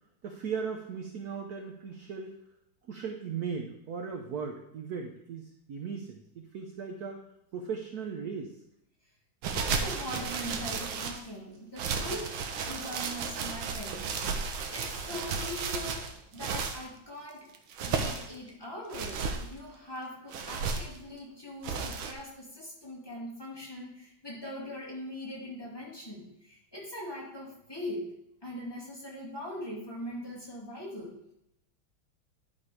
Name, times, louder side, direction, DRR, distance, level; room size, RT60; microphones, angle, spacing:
voice 1, 0.2-2.4 2.9-7.2 7.5-8.6, right 6 dB, 65° right, 3 dB, 1.0 m, -37 dB
sound 1, 9.4-11.3 11.8-16.8 17.5-18.4 18.9-19.5 20.3-21.0 21.6-22.1, right 5 dB, 80° right, 1.7 m, -33 dB
voice 2, 9.5-12.4 12.7-14.3 14.7-17.5 17.9-28.1 28.4-31.3, left 1 dB, 10° left, -6 dB, 2.4 m, -41 dB
11.0 x 4.3 x 4.9 m, 0.79 s
omnidirectional pair, 2.3 m